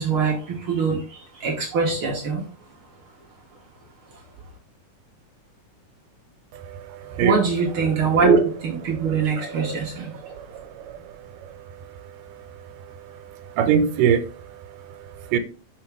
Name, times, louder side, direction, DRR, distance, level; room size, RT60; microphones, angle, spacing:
voice 1, 0.0-2.5 4.1-4.2 7.2-10.4, right 5 dB, 60° right, 0 dB, 1.4 m, -23 dB
voice 2, 10.3-11.0 13.6-14.2 15.3-15.4, right 8 dB, 90° right, 9 dB, 2.3 m, -21 dB
5.9 x 5.3 x 3.4 m, 0.37 s
omnidirectional pair, 3.8 m